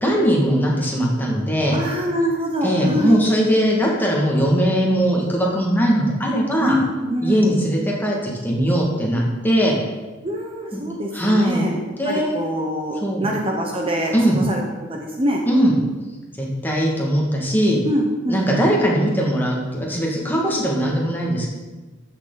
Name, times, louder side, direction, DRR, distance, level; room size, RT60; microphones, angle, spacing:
voice 1, 0.0-1.8 2.6-6.8 7.2-9.8 10.7-10.8 11.1-12.4 13.0-13.3 14.1-14.4 15.5-15.7 16.4-17.8 18.3-21.5, equal, 10° left, -3 dB, 2.0 m, -20 dB
voice 2, 1.7-3.2 6.6-7.5 10.2-11.8 12.0-15.4 17.8-18.5, equal, 30° right, 0 dB, 1.0 m, -24 dB
14.0 x 6.8 x 4.0 m, 1.2 s
head